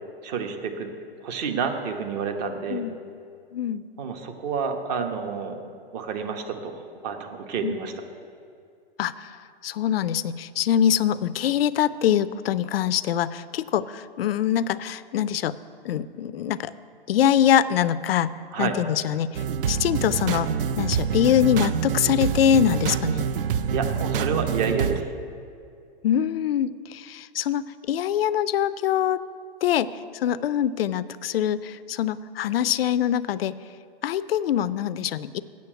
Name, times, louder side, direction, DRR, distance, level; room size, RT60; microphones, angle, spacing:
voice 1, 0.2-0.9 1.2-2.8 4.0-5.6 5.9-7.9 18.5-18.8 23.7-25.1, right 6 dB, 45° right, 5 dB, 1.2 m, -29 dB
voice 2, 3.5-3.8 7.6-7.8 9.0-9.3 9.6-15.6 15.8-16.7 17.1-20.5 20.8-23.3 26.0-29.2 29.6-29.9 30.1-33.5 34.0-35.4, left 10 dB, 75° left, 16 dB, 0.5 m, -24 dB
sound 1, 19.3-25.0, right 7 dB, 65° right, 0.6 m, -26 dB
8.4 x 6.5 x 7.8 m, 2.4 s
hypercardioid pair, 125°, 30 cm